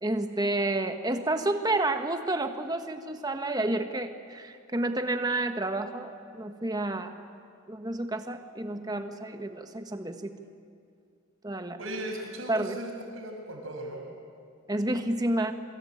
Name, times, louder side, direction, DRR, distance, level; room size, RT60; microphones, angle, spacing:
voice 1, 0.0-7.1 7.7-10.3 11.4-11.8 12.5-12.8 14.7-15.5, right 2 dB, 20° right, 7 dB, 1.3 m, -30 dB
voice 2, 11.8-14.0, right 1 dB, 70° right, 2 dB, 6.1 m, -37 dB
26.5 x 24.0 x 8.8 m, 2.3 s
head